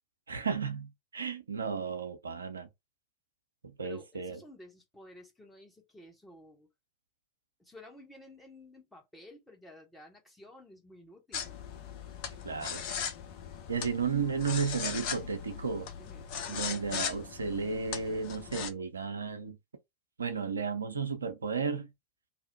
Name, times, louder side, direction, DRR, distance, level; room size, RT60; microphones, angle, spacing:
voice 1, 0.3-2.7 3.8-4.4 12.4-12.8 13.7-15.9 16.5-19.6 20.2-21.9, right 5 dB, 75° right, 0.5 m, -33 dB
voice 2, 3.8-6.7 7.6-11.6 16.0-16.3, left 1 dB, 5° left, 1.1 m, -53 dB
sound 1, 11.3-18.7, left 7 dB, 45° left, 0.7 m, -39 dB
2.9 x 2.1 x 4.0 m
figure-of-eight pair, 90°, 0 cm